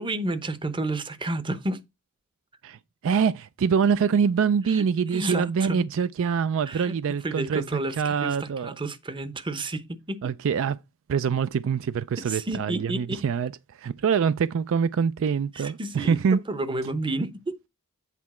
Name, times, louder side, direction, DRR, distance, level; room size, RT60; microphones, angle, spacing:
voice 1, 0.0-1.8 4.7-4.8 5.1-5.9 6.7-6.9 7.2-10.3 12.2-13.2 15.5-17.6, right 2 dB, 25° right, 0.8 m, -31 dB
voice 2, 2.6-7.6 8.0-8.7 10.2-10.8 11.1-16.4, right 6 dB, 65° right, 0.4 m, -25 dB
8.3 x 4.6 x 4.2 m
head